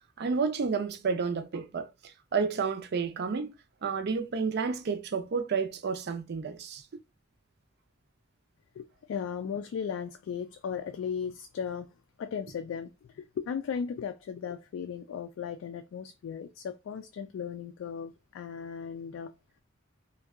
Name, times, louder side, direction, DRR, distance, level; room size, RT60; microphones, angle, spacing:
voice 1, 0.2-1.9 2.3-3.5 3.8-6.8, right 5 dB, 55° right, 0.5 m, -30 dB
voice 2, 8.8-11.9 12.2-19.3, left 7 dB, 85° left, 0.3 m, -36 dB
2.7 x 2.2 x 3.5 m
head